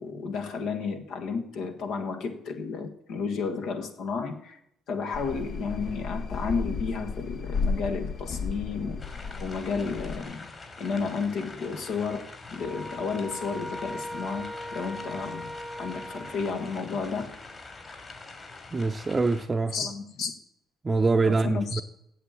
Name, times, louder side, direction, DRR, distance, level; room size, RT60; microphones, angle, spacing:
voice 1, 0.0-4.6 4.9-9.0 9.4-10.5 10.8-15.5 15.8-17.3 19.7-20.3 21.2-21.8, left 5 dB, 75° left, 1.5 m, -32 dB
sound 1, 5.1-10.2, left 4 dB, 60° left, 0.9 m, -33 dB
sound 2, 9.0-19.4, left 3 dB, 40° left, 3.3 m, -44 dB
sound 3, 12.6-17.0, left 1 dB, 10° left, 0.6 m, -39 dB
voice 2, 18.7-19.8 20.8-21.8, right 3 dB, 30° right, 0.6 m, -24 dB
8.3 x 7.2 x 7.4 m
supercardioid pair, 60°, 0 cm